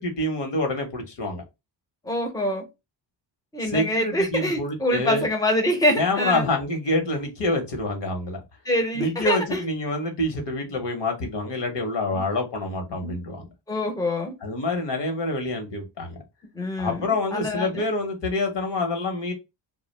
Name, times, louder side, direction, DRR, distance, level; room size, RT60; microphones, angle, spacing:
voice 1, 0.0-1.4 3.6-5.3 5.9-8.4 8.9-13.5 14.4-16.2 16.8-19.3, left 2 dB, 65° left, 1.0 m, -27 dB
voice 2, 2.0-2.7 3.5-6.5 8.6-9.6 12.1-12.2 13.0-13.2 13.7-14.3 16.5-17.8, left 1 dB, 10° left, 0.7 m, -25 dB
2.3 x 2.1 x 3.1 m
cardioid pair, 105°, 46 cm